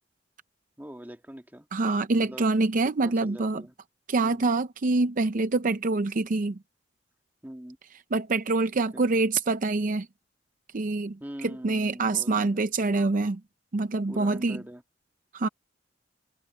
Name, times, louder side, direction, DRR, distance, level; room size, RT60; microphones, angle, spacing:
voice 1, 0.8-1.7 2.2-2.5 3.0-3.7 4.2-4.5 7.4-7.8 8.7-9.0 11.2-12.6 14.1-14.8, equal, 10° right, 1.6 m, -43 dB
voice 2, 1.7-3.6 4.1-6.6 8.1-10.1 10.7-13.4 13.7-14.6 15.3-15.5, right 3 dB, 45° right, 0.6 m, -25 dB
head